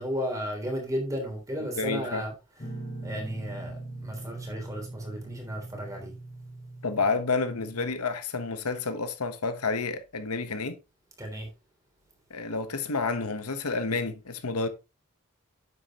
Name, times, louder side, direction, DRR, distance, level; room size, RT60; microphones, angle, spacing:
voice 1, 0.0-2.3 3.0-6.1 11.2-11.5, equal, 15° right, 3.3 m, -34 dB
voice 2, 1.7-2.2 6.8-10.8 12.3-14.7, left 4 dB, 90° left, 1.2 m, -29 dB
Guitar, 2.6-7.9, right 2 dB, 30° left, 2.3 m, -41 dB
9.9 x 7.8 x 3.0 m
head